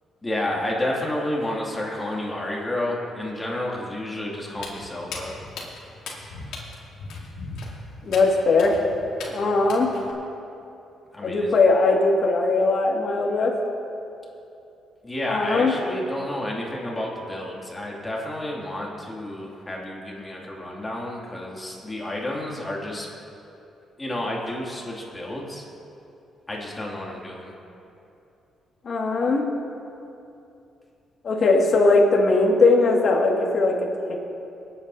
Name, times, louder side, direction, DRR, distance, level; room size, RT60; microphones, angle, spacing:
voice 1, 0.2-5.4 11.1-11.6 15.0-23.1 24.0-25.6 26.5-27.6, left 1 dB, 20° left, -3 dB, 2.4 m, -30 dB
Walk footsteps, 4.5-10.1, left 3 dB, 80° left, 2.1 m, -38 dB
voice 2, 8.0-8.8 9.3-9.9 11.2-13.6 15.3-15.7 28.8-29.5 31.2-33.8 34.1-34.2, left 3 dB, 50° left, -1 dB, 2.0 m, -19 dB
24.5 x 8.7 x 2.8 m, 2.8 s
cardioid pair, 90°, 0 cm